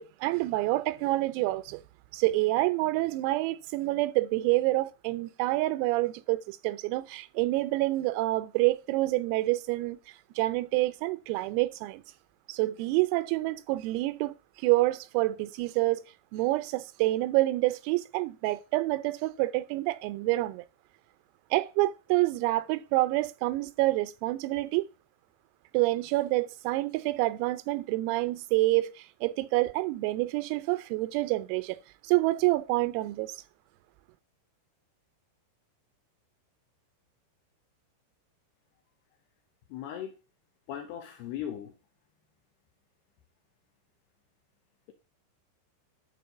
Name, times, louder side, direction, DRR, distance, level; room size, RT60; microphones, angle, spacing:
voice 1, 0.0-1.8 2.1-10.0 10.4-12.0 12.5-14.3 14.6-16.0 16.3-20.6 21.5-24.9 25.7-31.8 32.0-33.4, right 19 dB, 85° right, 3.4 m, -27 dB
voice 2, 39.7-40.1 40.7-41.7, left 10 dB, 80° left, 2.4 m, -37 dB
11.0 x 4.7 x 6.7 m
omnidirectional pair, 6.0 m